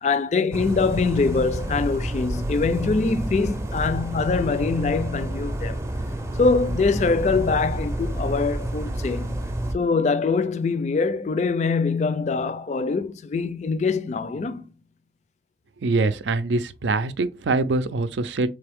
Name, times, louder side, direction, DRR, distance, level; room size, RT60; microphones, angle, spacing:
voice 1, 0.0-5.8 6.3-9.4 9.7-14.7, left 4 dB, 40° left, 0.3 m, -23 dB
sound 1, 0.5-9.7, right 1 dB, 15° right, 0.5 m, -29 dB
voice 2, 15.8-18.5, right 3 dB, 85° right, 0.5 m, -24 dB
3.8 x 3.3 x 3.5 m
head